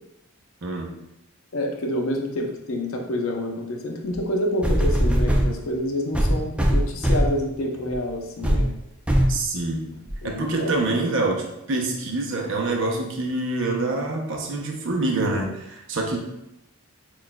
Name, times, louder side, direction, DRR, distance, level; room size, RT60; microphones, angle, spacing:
voice 1, 0.6-0.9 9.3-9.8 10.2-16.2, right 2 dB, 60° right, 1 dB, 0.7 m, -26 dB
voice 2, 1.5-8.7 10.2-11.0, left 1 dB, 65° left, 1 dB, 0.6 m, -28 dB
sound 1, 4.1-4.2 4.6-5.5 6.1-7.4 7.9-8.1 8.4-8.7 9.1-9.4 10.1-10.2, equal, 5° right, 0.4 m, -20 dB
6.0 x 2.4 x 2.2 m, 0.87 s
head